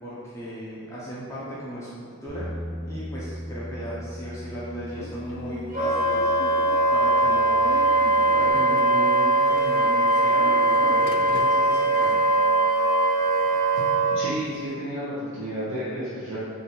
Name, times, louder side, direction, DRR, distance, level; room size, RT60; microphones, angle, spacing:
voice 1, 0.0-2.5 2.8-6.3 6.9-7.8 8.3-12.2, equal, 15° left, -9 dB, 0.6 m, -36 dB
Bass guitar, 2.3-8.5, equal, 15° right, 1.4 m, -39 dB
Subway metro underground / Alarm, 4.9-14.7, left 4 dB, 80° left, 0.4 m, -39 dB
Wind instrument woodwind instrument, 5.7-14.2, right 2 dB, 40° right, 1.3 m, -21 dB
voice 2, 14.1-16.4, equal, 60° right, -10 dB, 0.9 m, -31 dB
3.9 x 2.7 x 4.3 m, 2.1 s
head